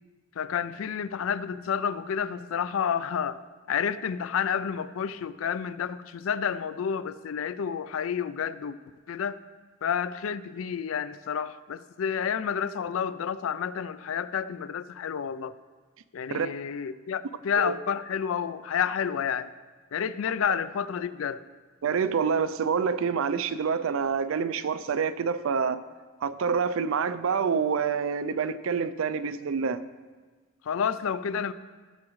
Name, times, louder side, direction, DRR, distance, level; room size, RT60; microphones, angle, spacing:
voice 1, 0.4-3.4 3.7-8.8 9.1-9.4 9.8-15.6 16.1-19.5 19.9-21.4 30.7-31.5, left 7 dB, 80° left, 15 dB, 0.4 m, -30 dB
voice 2, 21.8-25.8 26.2-29.8, right 6 dB, 75° right, 14 dB, 0.4 m, -27 dB
15.5 x 7.2 x 3.1 m, 1.4 s
head